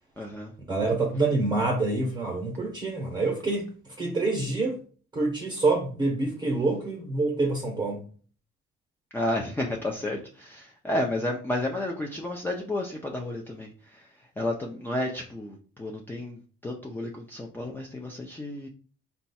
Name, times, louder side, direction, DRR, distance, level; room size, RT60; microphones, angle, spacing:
voice 1, 0.2-0.5 9.1-14.1 14.4-18.7, left 1 dB, 10° left, 0.5 m, -32 dB
voice 2, 0.7-3.7 4.0-4.8 5.1-8.1, right 3 dB, 20° right, 0.9 m, -26 dB
4.2 x 2.3 x 4.1 m
cardioid pair, 140°, 21 cm